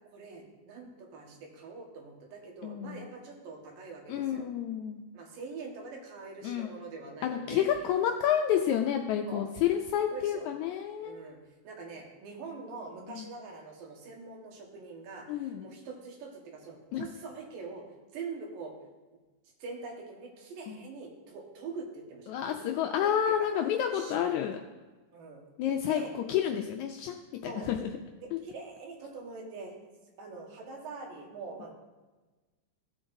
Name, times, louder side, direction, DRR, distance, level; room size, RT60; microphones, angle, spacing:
voice 1, 0.1-4.5 5.1-7.7 9.3-9.4 10.0-10.5 11.0-11.4 11.6-17.8 18.1-18.7 19.6-23.5 23.9-24.2 25.1-25.4 25.9-26.1 27.4-27.7 28.2-29.8 30.2-31.7, right 4 dB, 85° right, 0 dB, 3.1 m, -44 dB
voice 2, 2.6-3.0 4.1-5.0 6.4-6.7 7.2-11.2 13.1-13.3 15.3-15.7 16.9-17.1 20.7-20.8 22.3-24.6 25.6-26.0 26.3-27.9 28.3-28.4, left 9 dB, 85° left, 4 dB, 1.7 m, -30 dB
16.0 x 7.6 x 2.6 m, 1.2 s
omnidirectional pair, 3.9 m